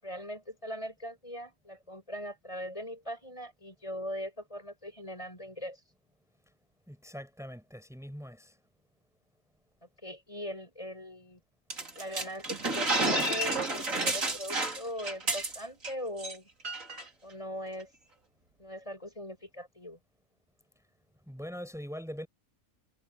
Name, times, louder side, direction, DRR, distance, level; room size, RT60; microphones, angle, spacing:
voice 1, 0.0-5.8 10.0-11.4 11.9-16.5 17.2-17.9 18.6-20.0, equal, 25° left, 8.0 m, -40 dB
voice 2, 6.9-8.6 21.3-22.3, equal, ahead, 6.4 m, -42 dB
sound 1, 11.7-15.9 16.2-16.3 16.6-17.0, right 2 dB, 75° right, 4.1 m, -30 dB
omnidirectional pair, 1.4 m